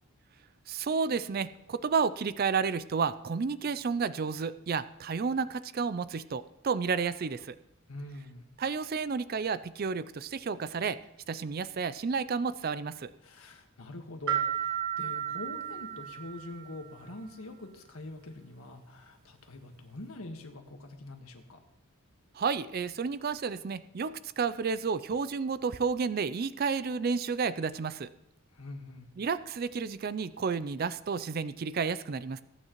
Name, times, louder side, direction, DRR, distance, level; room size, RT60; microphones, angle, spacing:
voice 1, 0.7-7.6 8.6-11.0 11.3-13.1 22.4-28.1 29.2-32.4, right 5 dB, 45° right, 14 dB, 0.4 m, -31 dB
voice 2, 7.9-8.4 13.2-21.6 28.5-29.1, left 2 dB, 80° left, 4 dB, 1.5 m, -44 dB
sound 1, 14.3-16.9, right 9 dB, 80° right, 1.2 m, -33 dB
20.0 x 9.1 x 3.1 m, 0.86 s
head